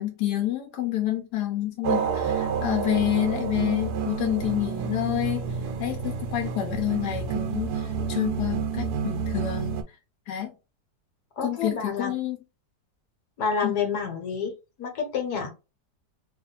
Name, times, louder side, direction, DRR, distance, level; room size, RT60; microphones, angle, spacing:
voice 1, 0.0-5.4 5.8-9.8 10.3-10.5 11.4-12.4 13.6-13.7, left 13 dB, 90° left, 1.3 m, -28 dB
sound 1, 1.8-9.8, right 6 dB, 80° right, 1.2 m, -29 dB
voice 2, 11.4-12.1 13.4-14.5 14.8-15.5, left 5 dB, 70° left, 1.6 m, -28 dB
3.1 x 2.6 x 4.0 m
omnidirectional pair, 1.7 m